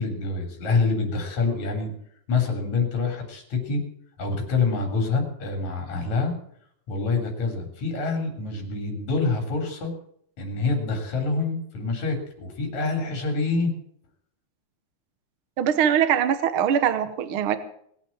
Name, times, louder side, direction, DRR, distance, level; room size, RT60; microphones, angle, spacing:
voice 1, 0.0-1.9 2.3-3.8 4.2-6.3 6.9-9.9 10.4-13.7, left 4 dB, 65° left, 3 dB, 4.8 m, -26 dB
voice 2, 15.6-17.6, right 9 dB, 60° right, 11 dB, 1.4 m, -22 dB
20.5 x 8.5 x 7.4 m, 0.67 s
omnidirectional pair, 3.5 m